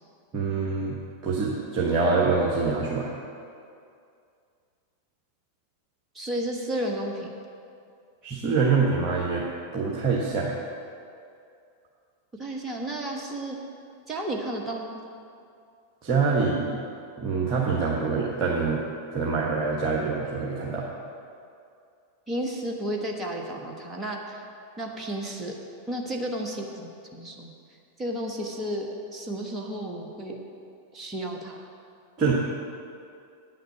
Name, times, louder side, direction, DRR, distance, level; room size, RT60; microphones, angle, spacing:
voice 1, 0.3-1.0 1.2-3.1 8.2-9.4 9.7-10.5 16.0-16.8 17.2-18.8 19.1-20.9 32.2-32.3, right 4 dB, 35° right, -4 dB, 1.3 m, -25 dB
voice 2, 6.1-7.3 12.4-13.6 14.1-15.0 22.3-24.4 24.8-25.6 25.9-27.5 28.0-30.4 30.9-31.6, right 1 dB, 15° right, 0 dB, 1.3 m, -32 dB
9.0 x 6.6 x 8.3 m, 2.4 s
figure-of-eight pair, 90°, 0 cm